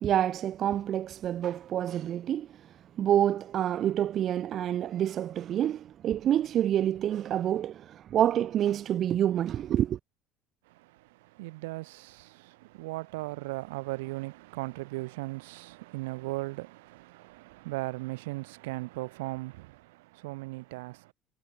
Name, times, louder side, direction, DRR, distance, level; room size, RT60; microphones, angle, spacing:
voice 1, 0.0-10.0, right 11 dB, 50° right, 1.0 m, -28 dB
voice 2, 10.7-21.1, right 21 dB, 80° right, 3.3 m, -38 dB
hypercardioid pair, 75°, 0 cm